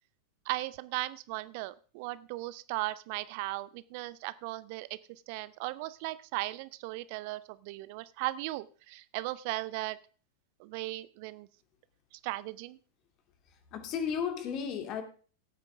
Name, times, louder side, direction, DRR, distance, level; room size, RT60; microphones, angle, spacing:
voice 1, 0.5-10.0 10.6-11.5 12.1-12.8, right 18 dB, 45° right, 0.5 m, -37 dB
voice 2, 13.5-15.0, left 7 dB, 35° left, 2.3 m, -34 dB
16.5 x 9.0 x 3.6 m
figure-of-eight pair, 90°, 0 cm